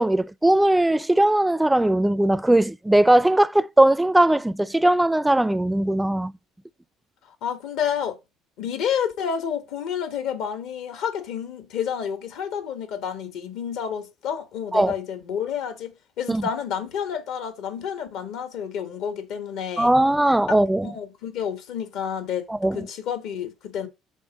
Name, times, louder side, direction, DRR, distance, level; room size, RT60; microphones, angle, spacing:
voice 1, 0.0-6.3 14.7-14.9 16.3-16.4 19.8-20.9 22.5-22.8, right 1 dB, 10° right, 0.4 m, -19 dB
voice 2, 7.4-8.2 8.6-19.9 20.5-20.6 20.8-22.5 22.7-23.9, left 8 dB, 70° left, 1.2 m, -29 dB
5.2 x 3.6 x 5.1 m
hypercardioid pair, 70°, 0 cm